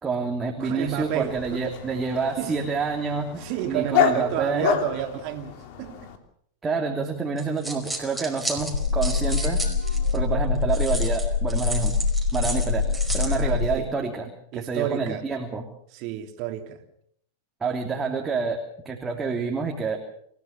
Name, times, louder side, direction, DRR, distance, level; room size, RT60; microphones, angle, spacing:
voice 1, 0.0-3.4 3.7-4.7 6.6-9.6 10.1-11.9 12.3-12.9 13.1-15.7 17.6-20.0, right 4 dB, 15° right, 3.1 m, -28 dB
voice 2, 0.6-1.6 2.4-2.6 3.4-6.1 13.3-14.0 14.5-15.2 15.9-16.8, right 11 dB, 50° right, 3.2 m, -31 dB
Dog, 0.8-6.2, left 9 dB, 55° left, 3.2 m, -29 dB
sound 1, 7.4-10.2 10.7-13.4, right 2 dB, ahead, 5.2 m, -33 dB
sound 2, 8.7-13.7, left 5 dB, 80° left, 2.0 m, -24 dB
27.5 x 15.5 x 7.1 m
hypercardioid pair, 95°, 0 cm